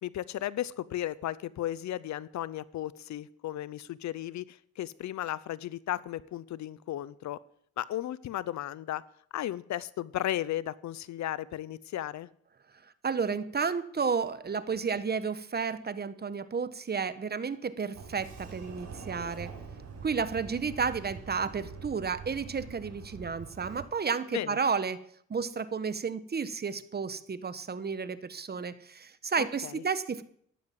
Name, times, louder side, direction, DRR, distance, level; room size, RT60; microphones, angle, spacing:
voice 1, 0.0-7.4 7.8-9.0 9.3-12.3 24.3-24.6 29.4-29.8, left 13 dB, 65° left, 19 dB, 0.8 m, -35 dB
voice 2, 13.0-19.5 20.0-25.0 25.3-30.2, right 5 dB, 30° right, 13 dB, 1.3 m, -32 dB
Sliding door, 17.9-23.8, right 5 dB, 60° right, 6.9 m, -44 dB
14.0 x 11.0 x 7.6 m, 0.64 s
cardioid pair, 90°, 30 cm